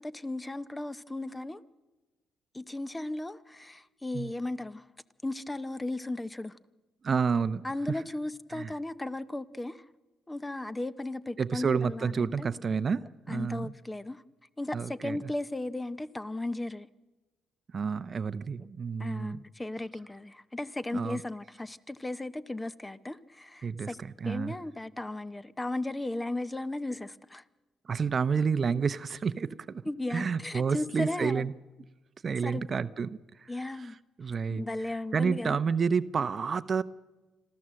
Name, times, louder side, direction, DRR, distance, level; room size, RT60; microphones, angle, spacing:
voice 1, 0.0-1.6 2.5-4.8 5.2-6.5 7.6-9.9 10.3-12.5 13.3-14.2 14.6-16.9 19.0-24.0 24.2-27.4 29.8-31.5 32.4-32.7 33.5-34.0 34.3-35.6, left 2 dB, 15° left, 0.8 m, -36 dB
voice 2, 7.0-8.0 8.5-8.7 11.4-13.7 14.7-15.2 17.7-19.4 20.9-21.2 23.6-24.6 27.8-29.8 30.1-31.5 32.2-33.5 33.8-33.9 34.2-34.6 35.1-36.8, right 5 dB, 40° right, 0.7 m, -30 dB
26.0 x 14.0 x 7.6 m
cardioid pair, 90°, 0 cm